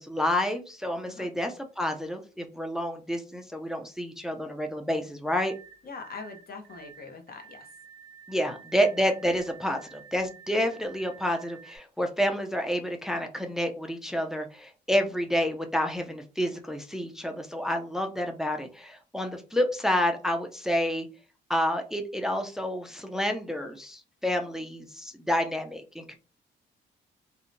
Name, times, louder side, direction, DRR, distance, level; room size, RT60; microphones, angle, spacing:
voice 1, 0.0-5.5 8.3-21.1 21.5-26.2, equal, ahead, 4 dB, 0.4 m, -29 dB
sound 1, 5.3-11.8, right 7 dB, 75° right, 0.4 m, -51 dB
voice 2, 5.8-7.7, left 4 dB, 50° left, 4 dB, 0.7 m, -42 dB
2.7 x 2.1 x 2.5 m, 0.34 s
cardioid pair, 90°, 20 cm